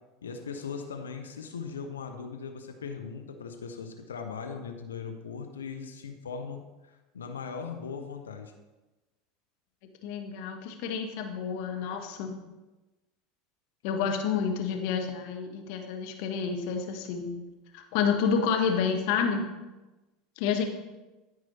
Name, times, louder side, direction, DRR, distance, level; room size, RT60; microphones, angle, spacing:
voice 1, 0.2-8.5, left 5 dB, 85° left, 6 dB, 0.9 m, -39 dB
voice 2, 10.0-12.3 13.8-17.3 17.7-19.5 20.4-20.6, left 6 dB, 60° left, 3 dB, 1.3 m, -29 dB
13.5 x 4.8 x 4.2 m, 1.1 s
hypercardioid pair, 80°, 0 cm